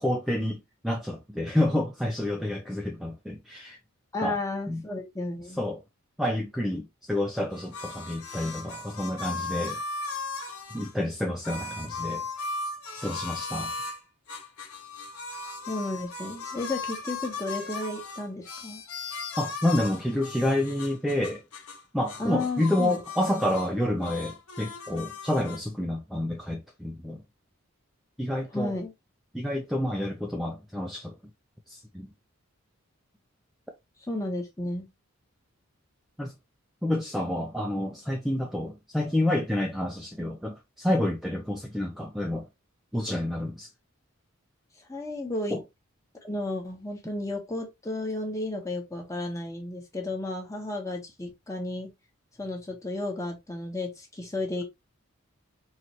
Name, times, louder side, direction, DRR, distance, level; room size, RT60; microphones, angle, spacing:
voice 1, 0.0-3.8 4.2-4.4 4.7-4.8 5.6-5.8 6.2-9.8 10.7-12.2 12.9-13.7 19.4-21.4 21.9-27.2 28.2-28.8 29.3-31.1 31.7-32.1 36.2-36.3 36.8-42.5 42.9-43.7 45.5-45.6, left 1 dB, ahead, 0.5 m, -29 dB
voice 2, 4.1-5.6 15.7-18.8 22.2-23.0 28.5-28.9 34.1-34.9 44.9-45.6 46.2-51.9 52.4-54.6, left 2 dB, 15° left, 1.1 m, -33 dB
sound 1, 7.5-10.9 11.4-14.0 14.3-21.8 22.1-23.7 24.0-25.6, left 3 dB, 80° left, 0.9 m, -37 dB
4.2 x 3.1 x 2.9 m
head